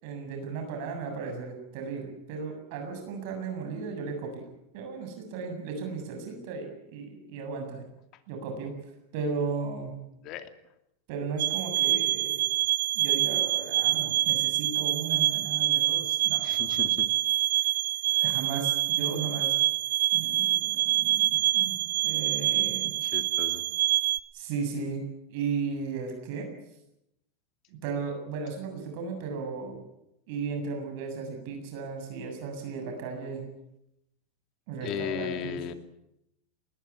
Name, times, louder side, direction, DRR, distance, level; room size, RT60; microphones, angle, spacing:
voice 1, 0.0-4.4 4.7-7.8 8.3-8.7 9.1-9.9 11.1-12.4 12.9-16.4 18.1-19.6 20.1-21.8 22.0-22.9 24.3-26.5 27.7-29.9 30.3-33.4 34.7-35.6, right 5 dB, 60° right, 4 dB, 7.5 m, -35 dB
sound 1, 11.4-24.2, right 15 dB, 90° right, 1.5 m, -26 dB
voice 2, 16.4-17.1 23.0-23.6 34.8-35.7, left 10 dB, 45° left, 8 dB, 2.8 m, -35 dB
20.5 x 20.0 x 9.8 m, 0.83 s
supercardioid pair, 135°, 0 cm